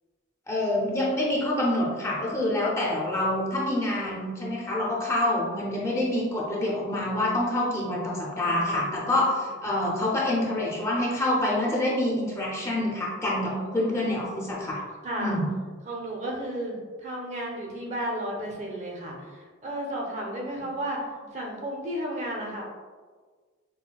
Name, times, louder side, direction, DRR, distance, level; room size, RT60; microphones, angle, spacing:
voice 1, 0.5-14.8 15.2-15.5, left 1 dB, 15° left, -5 dB, 0.6 m, -26 dB
voice 2, 8.4-9.3 13.5-14.0 15.0-15.4 15.9-22.6, right 1 dB, 35° right, -1 dB, 0.6 m, -34 dB
5.6 x 2.2 x 2.3 m, 1.5 s
head